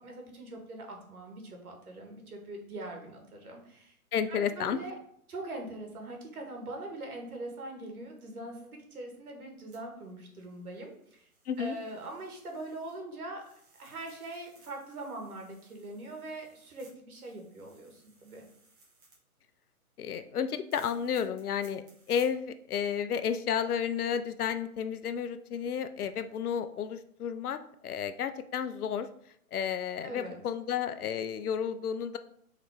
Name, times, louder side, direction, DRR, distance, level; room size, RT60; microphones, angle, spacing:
voice 1, 0.0-4.0 4.3-4.9 5.3-11.3 11.6-13.4 13.8-18.4 30.0-30.4, right 2 dB, 75° right, 2 dB, 1.7 m, -42 dB
voice 2, 4.1-4.8 11.5-11.8 20.0-29.1 29.5-32.2, left 8 dB, 80° left, 10 dB, 0.6 m, -32 dB
sound 1, 9.7-13.0 13.3-19.2 20.7-22.3 22.8-22.9, right 3 dB, 25° right, 1.5 m, -62 dB
4.0 x 3.7 x 3.4 m, 0.68 s
hypercardioid pair, 145°, 44 cm